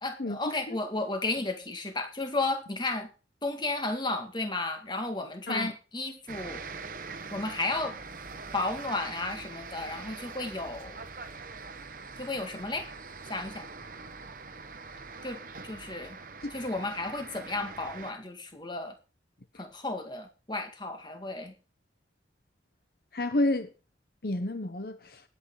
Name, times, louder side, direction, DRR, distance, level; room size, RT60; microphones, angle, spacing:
voice 1, 0.0-3.1 3.4-6.6 7.3-8.0 8.5-11.0 12.2-12.9 13.3-13.7 15.2-16.2 16.5-19.0 19.6-21.5, left 2 dB, 25° left, 2.0 m, -33 dB
sound 1, 6.3-18.1, right 4 dB, 50° right, 1.1 m, -43 dB
voice 2, 23.1-23.7 24.2-25.2, left 2 dB, 55° left, 0.9 m, -30 dB
20.0 x 8.4 x 3.9 m
head